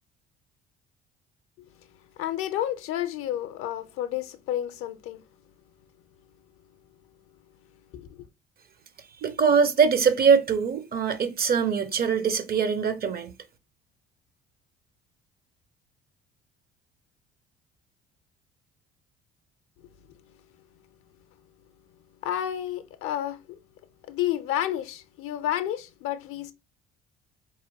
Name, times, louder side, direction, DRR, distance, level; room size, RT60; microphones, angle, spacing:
voice 1, 2.2-5.2 7.9-8.3 20.1-20.2 22.2-23.6 24.0-26.5, left 12 dB, 50° left, 0.5 m, -31 dB
voice 2, 9.2-13.3, right 6 dB, 30° right, 0.6 m, -22 dB
4.3 x 3.0 x 2.6 m
figure-of-eight pair, 55°, 29 cm